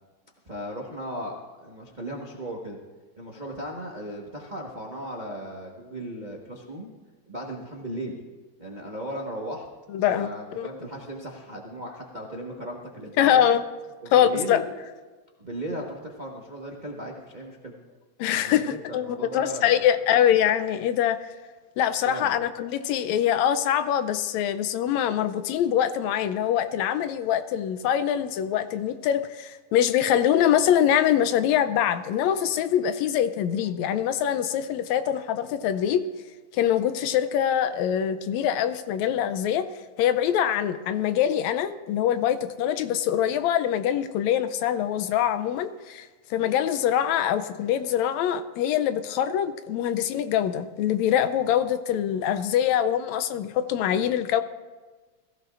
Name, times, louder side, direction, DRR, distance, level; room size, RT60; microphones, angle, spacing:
voice 1, 0.5-2.8 3.2-6.9 7.3-8.2 8.6-9.7 10.1-13.5 14.0-14.6 15.4-17.8 18.3-19.9 22.1-22.5, right 1 dB, 65° right, -2 dB, 0.4 m, -36 dB
voice 2, 9.9-10.3 10.6-10.7 13.2-13.6 14.1-14.6 18.2-21.2 21.8-36.0 36.5-39.7 40.0-54.4, left 10 dB, 80° left, 11 dB, 1.8 m, -24 dB
22.0 x 15.0 x 2.5 m, 1.3 s
omnidirectional pair, 3.3 m